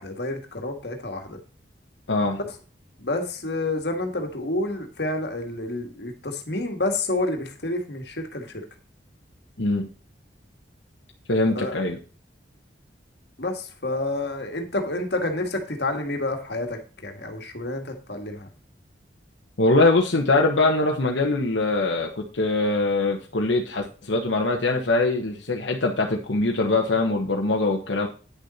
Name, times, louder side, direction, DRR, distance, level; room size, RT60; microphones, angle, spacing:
voice 1, 0.0-1.4 3.0-8.6 11.5-11.8 13.4-18.5, left 2 dB, 65° left, 4 dB, 1.9 m, -29 dB
voice 2, 2.1-2.4 9.6-9.9 11.3-12.0 19.6-28.1, left 2 dB, 85° left, 0 dB, 1.2 m, -22 dB
9.7 x 6.6 x 4.3 m, 0.36 s
head